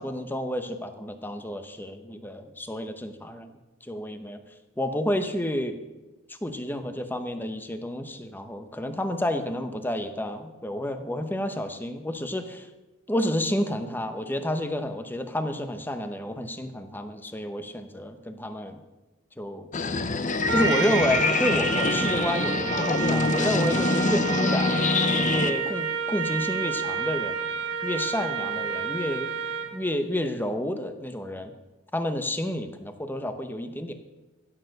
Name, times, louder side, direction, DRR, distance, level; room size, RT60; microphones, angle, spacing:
voice 1, 0.0-3.5 3.8-4.4 4.8-5.8 6.3-12.7 13.1-18.8 19.4-19.7 20.5-24.7 25.2-27.4 27.8-29.3 29.7-31.5 31.9-33.9, left 1 dB, 10° left, 8 dB, 0.9 m, -30 dB
sound 1, 19.7-25.5, left 3 dB, 35° left, 0.7 m, -25 dB
Trumpet, 20.5-29.8, right 6 dB, 60° right, 1.3 m, -29 dB
16.0 x 6.7 x 6.6 m, 1.1 s
head